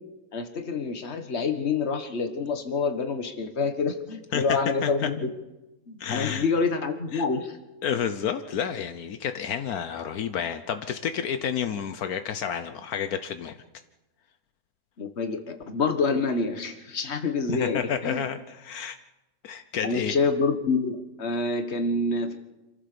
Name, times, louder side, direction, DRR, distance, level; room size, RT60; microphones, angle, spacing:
voice 1, 0.3-5.3 5.9-7.6 15.0-18.2 19.8-22.4, left 4 dB, 45° left, 7 dB, 1.8 m, -27 dB
voice 2, 6.0-6.4 7.1-7.2 7.8-13.6 17.6-19.0 19.4-20.2, left 8 dB, 80° left, 9 dB, 1.3 m, -30 dB
27.0 x 15.0 x 6.9 m, 1.1 s
omnidirectional pair, 1.6 m